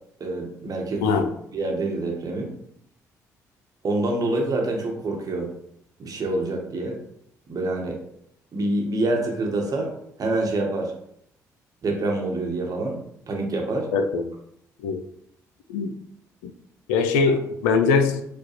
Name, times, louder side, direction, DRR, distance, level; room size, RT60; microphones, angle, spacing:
voice 1, 0.2-1.1 1.5-2.6 3.8-5.5 6.0-7.0 7.5-8.0 8.5-9.9 10.2-10.9 11.8-13.0 13.3-13.9 17.3-17.4, right 2 dB, 45° right, 1.0 m, -26 dB
voice 2, 1.0-1.3 13.9-14.3 14.8-15.0 15.7-15.9 16.4-16.5 16.9-18.2, left 4 dB, 75° left, 0.3 m, -22 dB
4.6 x 2.2 x 2.9 m
hypercardioid pair, 45°, 9 cm